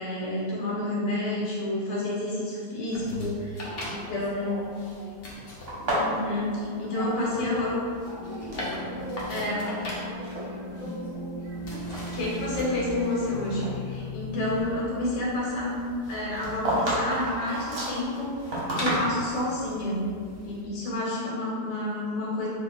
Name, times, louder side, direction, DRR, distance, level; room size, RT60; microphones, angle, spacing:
voice 1, 0.0-4.6 6.0-7.8 9.3-9.6 12.1-15.8 16.1-18.3 18.8-20.0 20.4-22.5, left 1 dB, 85° left, -6 dB, 1.4 m, -29 dB
sound 1, 2.9-20.6, left 1 dB, 70° left, 0.5 m, -42 dB
voice 2, 3.6-4.7 4.9-5.3 6.9-12.0, equal, 70° right, -8 dB, 0.5 m, -41 dB
sound 2, 5.7-7.7 7.9-8.7 9.3-9.9 10.2-10.5 11.1-11.2 11.8-13.3 13.6-13.7 16.0-19.5, right 1 dB, 50° right, 0.8 m, -31 dB
sound 3, 5.8-14.6, left 1 dB, 90° right, 1.2 m, -38 dB
2.8 x 2.4 x 3.7 m, 2.1 s
omnidirectional pair, 1.8 m